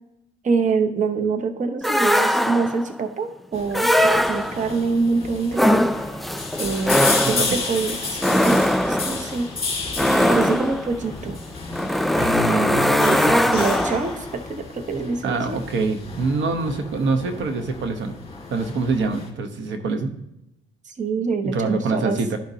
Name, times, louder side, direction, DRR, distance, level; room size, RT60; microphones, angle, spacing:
voice 1, 0.4-5.9 6.6-9.5 10.2-11.4 13.5-15.6 20.9-22.2, right 4 dB, 40° right, 7 dB, 0.8 m, -25 dB
sound 1, 1.8-2.9 3.7-4.8 5.5-14.2, equal, ahead, 0.3 m, -21 dB
sound 2, 3.5-19.3, left 4 dB, 30° left, 1.9 m, -32 dB
voice 2, 12.1-13.5 15.2-18.1 18.5-20.1 21.4-22.4, right 3 dB, 70° right, 6 dB, 0.9 m, -25 dB
12.0 x 5.0 x 2.8 m, 0.84 s
cardioid pair, 90°, 20 cm